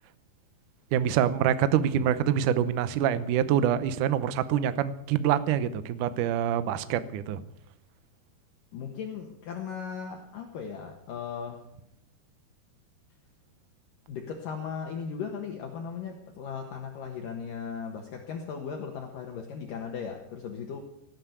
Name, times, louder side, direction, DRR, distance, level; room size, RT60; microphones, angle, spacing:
voice 1, 0.9-7.4, right 9 dB, 85° right, 13 dB, 1.8 m, -25 dB
voice 2, 8.7-11.6 14.1-20.8, left 6 dB, 60° left, 2 dB, 2.7 m, -37 dB
18.0 x 9.5 x 8.2 m, 0.77 s
omnidirectional pair, 4.9 m